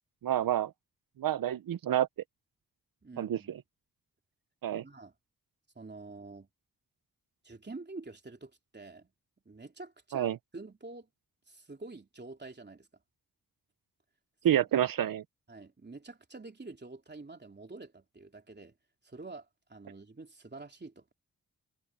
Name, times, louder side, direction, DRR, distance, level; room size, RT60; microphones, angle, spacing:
voice 1, 0.2-0.7 1.2-2.1 3.2-3.6 4.6-4.8 10.1-10.4 14.4-15.2, right 11 dB, 80° right, 0.6 m, -28 dB
voice 2, 3.0-3.5 4.7-5.1 5.7-6.5 7.4-9.1 9.4-11.1 11.5-12.9 14.5-14.6 15.5-18.7 19.0-21.1, right 3 dB, 30° right, 3.2 m, -47 dB
cardioid pair, 70°, 34 cm